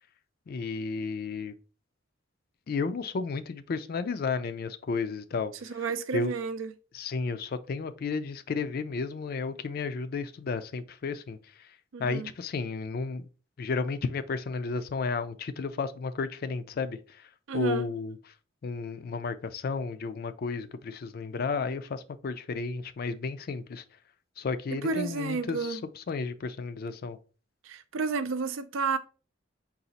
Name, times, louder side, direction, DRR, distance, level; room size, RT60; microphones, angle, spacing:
voice 1, 0.5-1.5 2.7-5.8 6.1-6.3 6.9-11.7 12.0-13.3 13.6-18.2 18.6-23.8 24.4-27.2, left 4 dB, 50° left, 0.4 m, -33 dB
voice 2, 5.7-6.7 11.9-12.3 17.5-17.9 24.8-25.8 27.6-29.0, right 4 dB, 90° right, 0.5 m, -31 dB
4.0 x 2.4 x 4.0 m
head